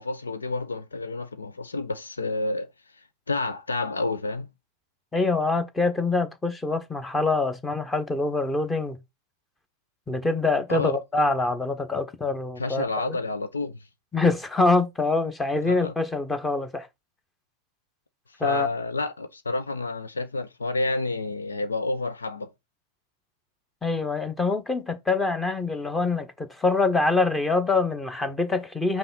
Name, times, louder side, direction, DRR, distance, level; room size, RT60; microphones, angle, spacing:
voice 1, 0.0-2.7 3.3-4.5 10.7-11.0 12.6-13.8 15.6-15.9 18.4-22.5, left 3 dB, 75° left, 1.0 m, -29 dB
voice 2, 5.1-9.0 10.1-13.2 14.1-16.9 18.4-18.7 23.8-29.0, left 3 dB, 10° left, 1.2 m, -25 dB
5.7 x 4.7 x 4.0 m
figure-of-eight pair, 90°, 0 cm